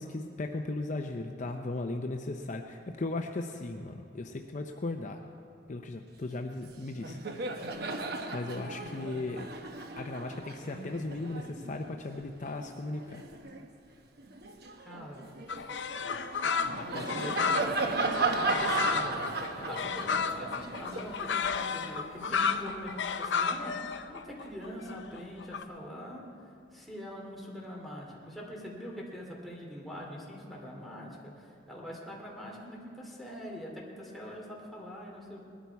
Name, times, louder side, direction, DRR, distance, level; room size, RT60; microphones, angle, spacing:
voice 1, 0.0-5.2 5.7-7.7 8.3-9.5 10.0-13.2 16.6-17.4, left 2 dB, 45° left, 4 dB, 0.6 m, -37 dB
Laughter, 6.5-6.7 6.9-13.7 14.2-22.4, right 3 dB, 60° right, 1.0 m, -36 dB
voice 2, 14.7-15.4 16.9-17.7 18.0-19.2 19.5-26.2 26.7-31.1 31.7-35.4, equal, ahead, -3 dB, 2.7 m, -43 dB
sound 1, 15.5-25.6, left 6 dB, 85° left, 0.7 m, -32 dB
20.5 x 12.5 x 4.6 m, 2.5 s
head